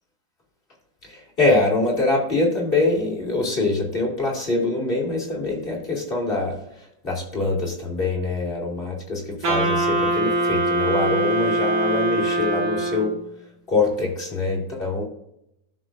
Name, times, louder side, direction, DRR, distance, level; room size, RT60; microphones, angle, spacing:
voice 1, 1.0-13.1 13.7-15.0, left 2 dB, 25° left, -3 dB, 2.7 m, -24 dB
Wind instrument woodwind instrument, 9.4-13.3, right 1 dB, 60° right, 2.5 m, -23 dB
13.5 x 6.4 x 2.6 m, 0.79 s
omnidirectional pair, 2.2 m